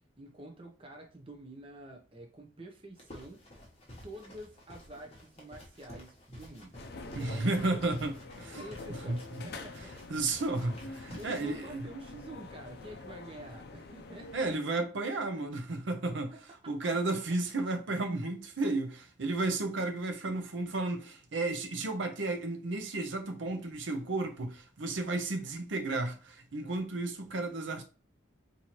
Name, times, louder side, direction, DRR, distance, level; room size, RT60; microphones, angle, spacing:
voice 1, 0.2-3.4 4.0-6.8 7.7-7.8 8.5-9.9 11.1-14.6 16.3-16.7, right 1 dB, 25° right, 0.6 m, -48 dB
sound 1, 3.0-11.4, left 1 dB, 30° left, 1.0 m, -51 dB
sound 2, 6.7-14.5, left 3 dB, 50° left, 0.4 m, -46 dB
voice 2, 7.1-8.6 9.1-9.2 10.1-11.8 14.3-16.3 16.7-27.8, right 2 dB, 65° right, 0.7 m, -33 dB
4.2 x 2.7 x 2.9 m
head